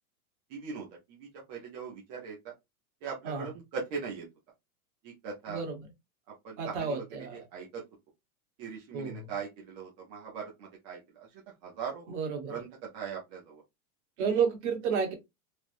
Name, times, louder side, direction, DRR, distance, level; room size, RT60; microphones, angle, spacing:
voice 1, 0.5-2.4 3.0-4.3 5.0-5.6 6.4-7.8 8.6-12.1 12.5-13.6 14.2-14.4, right 6 dB, 25° right, 0.7 m, -40 dB
voice 2, 5.5-5.8 6.6-7.4 8.9-9.3 12.1-12.6 14.2-15.1, right 6 dB, 50° right, 1.3 m, -31 dB
3.3 x 2.3 x 2.6 m
supercardioid pair, 165°, 45 cm